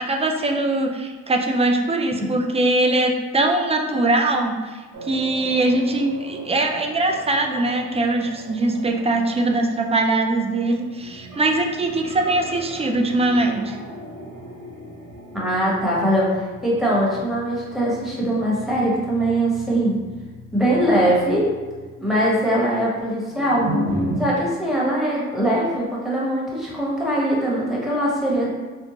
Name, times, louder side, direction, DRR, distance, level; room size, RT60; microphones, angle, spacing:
voice 1, 0.0-13.8, right 2 dB, 20° right, 3 dB, 0.4 m, -21 dB
sound 1, 4.9-24.2, right 1 dB, 70° right, 1.3 m, -36 dB
voice 2, 15.3-19.9 20.5-21.5 22.0-23.7 24.2-28.5, right 1 dB, ahead, -6 dB, 1.2 m, -21 dB
4.4 x 2.0 x 2.8 m, 1.3 s
cardioid pair, 90°, 30 cm